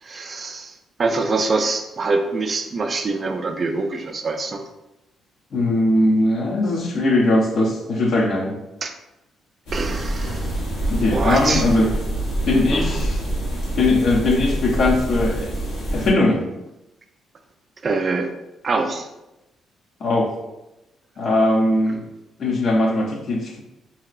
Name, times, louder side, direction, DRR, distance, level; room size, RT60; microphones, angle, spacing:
voice 1, 0.0-4.6 8.8-8.9 9.7-10.5 11.0-11.6 12.7-13.0 17.8-18.3 18.6-19.1, right 3 dB, 40° right, 5 dB, 0.4 m, -24 dB
voice 2, 5.5-8.6 10.9-11.9 12.5-13.2 13.8-15.5 15.9-16.5 20.0-20.3 21.2-22.0 22.4-23.6, left 2 dB, 60° left, 1 dB, 0.6 m, -19 dB
sound 1, 9.7-16.1, right 1 dB, 85° left, 1.0 m, -25 dB
2.9 x 2.7 x 2.5 m, 0.93 s
cardioid pair, 90°, 0 cm